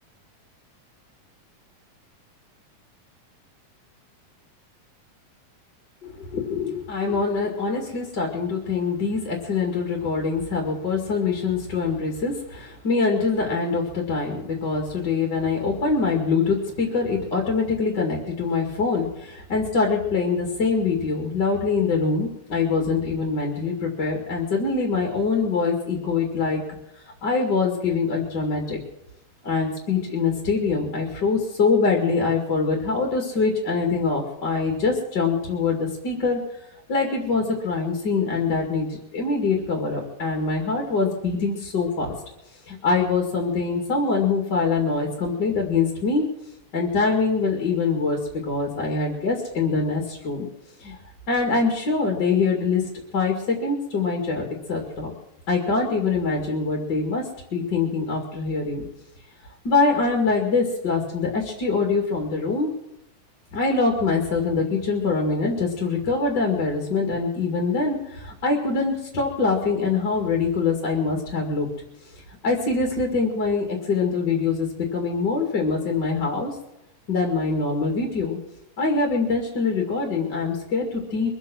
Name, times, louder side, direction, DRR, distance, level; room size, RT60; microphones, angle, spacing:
voice 1, 6.0-26.6 27.2-28.8 29.4-36.4 36.9-38.9 39.1-42.1 42.7-46.2 46.7-48.2 48.5-50.5 50.8-51.0 51.3-52.8 53.1-55.1 55.5-57.2 57.5-58.8 59.6-62.7 63.5-71.7 72.4-76.5 77.1-78.4 78.8-81.4, left 4 dB, 35° left, 0 dB, 2.4 m, -24 dB
23.5 x 8.2 x 6.2 m, 0.85 s
omnidirectional pair, 4.1 m